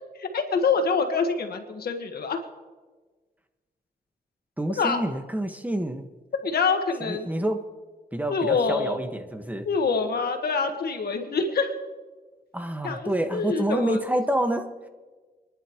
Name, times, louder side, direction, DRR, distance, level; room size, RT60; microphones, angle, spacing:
voice 1, 0.2-2.4 4.8-5.0 6.4-7.3 8.3-9.0 9.6-11.7 12.8-14.0, left 5 dB, 85° left, 5 dB, 1.7 m, -25 dB
voice 2, 4.6-6.1 7.0-7.6 8.1-9.7 12.5-14.9, right 1 dB, 10° right, 6 dB, 1.6 m, -28 dB
28.5 x 11.0 x 3.2 m, 1.3 s
cardioid pair, 65°, 16 cm